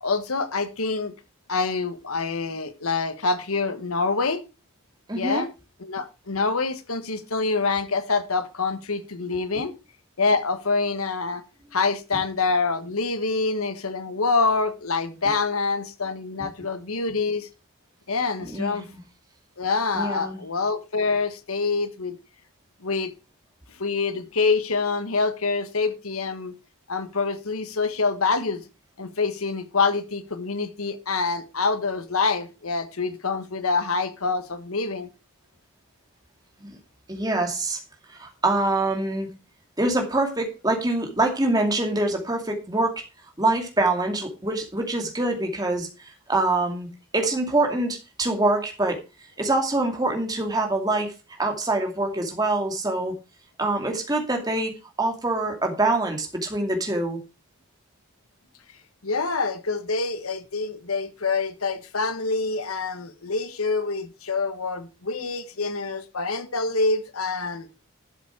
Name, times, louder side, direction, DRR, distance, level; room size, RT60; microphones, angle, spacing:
voice 1, 0.0-1.1 1.5-4.4 5.1-5.5 5.8-9.7 10.2-11.4 11.7-17.5 18.1-18.8 19.6-22.2 22.8-23.1 23.8-26.5 26.9-28.6 29.0-35.1 59.0-67.7, left 4 dB, 90° left, 1.5 m, -26 dB
voice 2, 5.1-5.5 9.5-9.6 16.4-16.5 18.4-19.0 19.9-20.4 36.6-36.8 37.1-37.8 38.1-39.3 39.8-43.0 43.4-46.9 47.1-49.0 49.4-51.1 51.4-53.2 53.6-54.7 55.0-57.2, right 2 dB, 20° right, 2.5 m, -25 dB
12.0 x 7.4 x 4.7 m
head